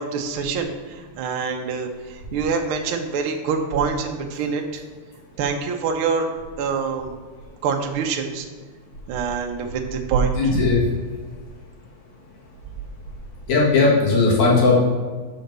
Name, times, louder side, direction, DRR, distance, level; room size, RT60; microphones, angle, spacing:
voice 1, 0.0-4.8 5.4-6.3 6.6-7.1 7.6-8.5 9.1-10.7, right 5 dB, 80° right, 3 dB, 1.2 m, -25 dB
voice 2, 10.3-10.8 13.5-14.8, left 3 dB, 70° left, -4 dB, 3.1 m, -17 dB
5.7 x 5.1 x 6.6 m, 1.5 s
omnidirectional pair, 3.4 m